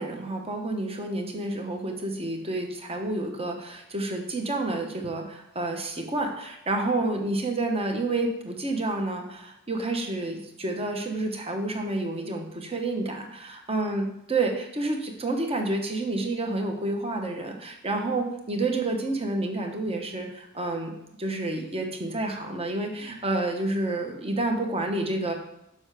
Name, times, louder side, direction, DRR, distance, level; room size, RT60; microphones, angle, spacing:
voice 1, 0.0-20.9 21.2-25.3, right 2 dB, 25° right, 3 dB, 1.0 m, -29 dB
7.1 x 5.5 x 4.9 m, 0.83 s
head